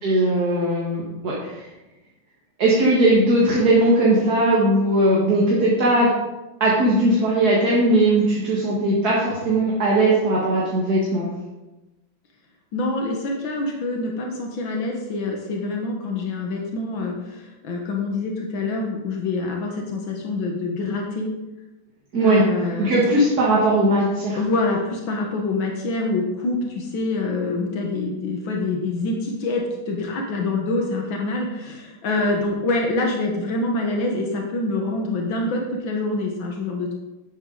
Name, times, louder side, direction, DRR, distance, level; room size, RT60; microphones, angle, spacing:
voice 1, 0.0-1.6 2.6-6.1 6.6-11.3 22.1-22.4 22.8-24.4, right 1 dB, 50° right, -5 dB, 2.2 m, -19 dB
voice 2, 12.7-21.3 22.2-22.9 24.4-36.9, left 2 dB, 85° left, 0 dB, 2.0 m, -26 dB
10.5 x 8.1 x 3.9 m, 1.1 s
omnidirectional pair, 2.1 m